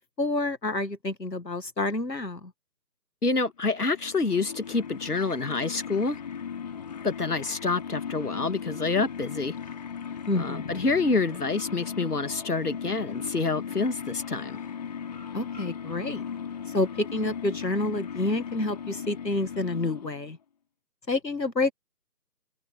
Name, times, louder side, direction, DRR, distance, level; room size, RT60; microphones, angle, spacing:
voice 1, 0.0-2.5 10.3-10.8 15.3-16.2 16.7-20.4 21.1-21.7, left 2 dB, 80° left, 2.0 m, -29 dB
voice 2, 3.2-6.2 7.0-9.6 10.3-14.6, left 3 dB, 65° left, 2.1 m, -27 dB
sound 1, 3.7-20.3, left 7 dB, 25° left, 4.2 m, -37 dB
figure-of-eight pair, 160°, 49 cm